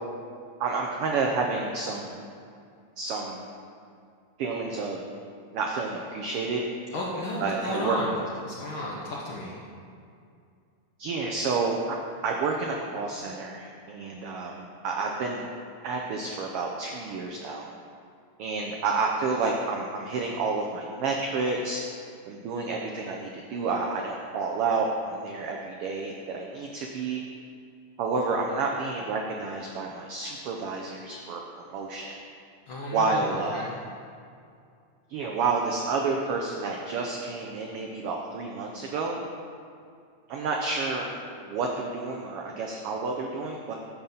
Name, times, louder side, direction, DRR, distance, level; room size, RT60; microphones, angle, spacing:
voice 1, 0.6-2.2 3.0-3.5 4.4-5.0 5.5-6.6 7.4-8.0 11.0-12.0 12.2-15.4 15.8-17.7 18.4-21.8 22.3-27.2 28.0-32.2 32.9-33.6 35.1-39.2 40.3-41.1 41.4-43.8, right 4 dB, 85° right, 1 dB, 1.2 m, -30 dB
voice 2, 6.9-8.2 8.4-9.6 32.7-33.8, left 1 dB, 65° left, -4 dB, 1.3 m, -33 dB
9.6 x 7.1 x 3.9 m, 2.4 s
omnidirectional pair, 3.3 m